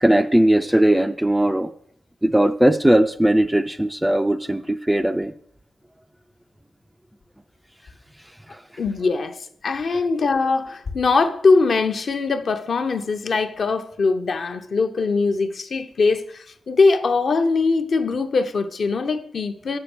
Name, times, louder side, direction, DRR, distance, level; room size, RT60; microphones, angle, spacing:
voice 1, 0.0-1.7 2.2-5.3, right 1 dB, 5° right, 0.3 m, -18 dB
voice 2, 8.8-19.8, left 4 dB, 50° left, 0.7 m, -21 dB
7.9 x 6.7 x 6.0 m
wide cardioid pair, 145°, 0 cm